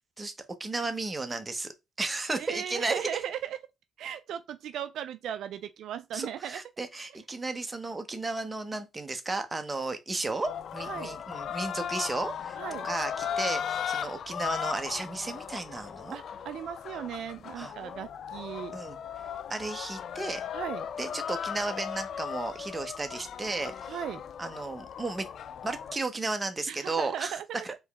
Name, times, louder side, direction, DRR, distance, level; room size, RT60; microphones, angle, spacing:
voice 1, 0.6-1.7 2.0-3.0 6.1-12.6 12.8-16.2 17.6-17.7 18.7-19.0 19.5-20.5 21.0-23.9 24.4-25.2 25.6-27.4 27.6-27.7, right 3 dB, 20° right, 0.9 m, -34 dB
voice 2, 2.4-3.6 4.0-6.6 10.8-11.2 12.6-12.9 16.1-18.7 20.5-20.9 23.9-24.2 26.7-27.7, right 10 dB, 75° right, 0.3 m, -37 dB
sound 1, 10.4-26.0, left 8 dB, 60° left, 0.3 m, -37 dB
4.4 x 3.0 x 3.4 m
cardioid pair, 90°, 0 cm